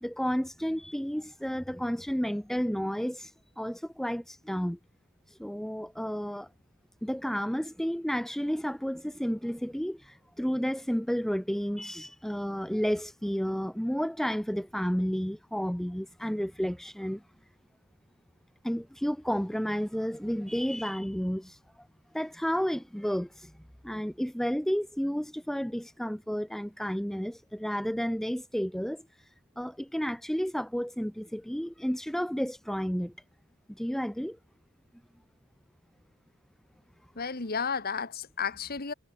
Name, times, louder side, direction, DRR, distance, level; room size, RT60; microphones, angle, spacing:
voice 1, 0.0-4.8 5.3-6.5 7.0-17.2 18.6-21.9 22.1-23.5 23.8-29.1 29.6-33.1 33.7-34.4, equal, ahead, 0.5 m, -31 dB
voice 2, 37.1-38.9, left 5 dB, 45° left, 1.6 m, -32 dB
head